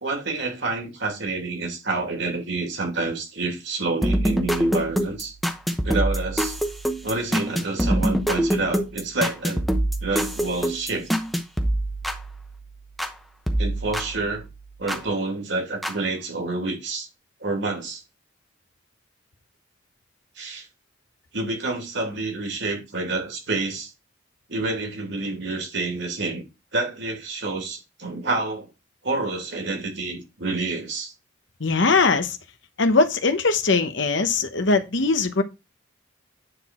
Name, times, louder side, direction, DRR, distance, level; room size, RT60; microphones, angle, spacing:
voice 1, 0.0-5.3 5.8-6.6 7.0-9.7 10.0-11.1 13.6-14.4 14.8-17.1 17.4-18.0 20.4-20.7 21.3-23.9 24.5-26.4 26.7-28.7 29.0-31.1, right 3 dB, 60° right, 2.8 m, -28 dB
sound 1, 4.0-13.2 13.5-15.0 15.8-15.9, right 1 dB, ahead, 0.9 m, -26 dB
voice 2, 31.6-32.4 32.8-35.4, left 3 dB, 65° left, 1.0 m, -20 dB
9.7 x 4.1 x 4.3 m
head